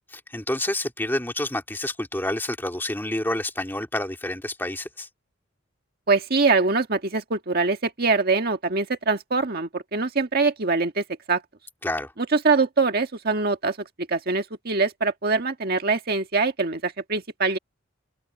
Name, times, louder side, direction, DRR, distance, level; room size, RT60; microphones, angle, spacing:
voice 1, 0.1-5.1 11.8-12.1, left 1 dB, 10° left, 2.8 m, -28 dB
voice 2, 6.1-11.4 12.2-13.8 14.1-17.6, right 4 dB, 50° right, 1.6 m, -23 dB
open air
head